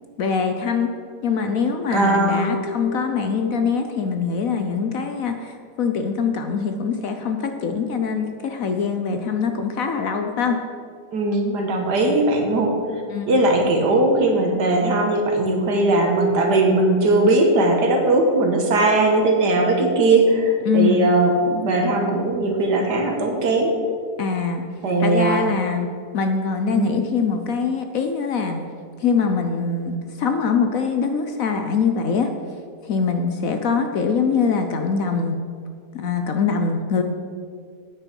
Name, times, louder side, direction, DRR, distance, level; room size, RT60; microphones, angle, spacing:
voice 1, 0.2-0.9 1.2-10.6 13.1-13.3 20.7-21.0 24.2-24.6 25.0-25.9 26.1-28.6 29.0-32.3 32.8-35.4 35.9-37.0, left 5 dB, 60° left, 6 dB, 1.0 m, -23 dB
voice 2, 1.9-2.5 11.1-12.7 13.3-23.8 24.8-25.4 26.7-26.9, right 2 dB, 70° right, 2 dB, 2.0 m, -19 dB
9.2 x 9.0 x 5.3 m, 2.2 s
omnidirectional pair, 1.9 m